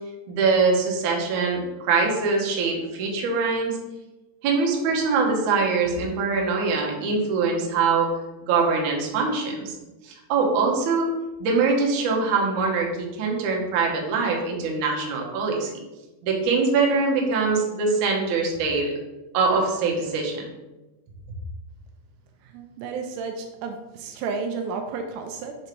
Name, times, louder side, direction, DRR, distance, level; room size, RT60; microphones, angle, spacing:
voice 1, 0.3-3.8 4.4-8.1 8.4-9.8 10.0-11.1 11.4-15.7 16.2-18.9 19.3-20.5, right 4 dB, 65° right, -1 dB, 2.1 m, -23 dB
voice 2, 22.4-25.6, right 4 dB, 80° right, 4 dB, 2.7 m, -32 dB
6.6 x 4.0 x 4.5 m, 1.1 s
omnidirectional pair, 5.0 m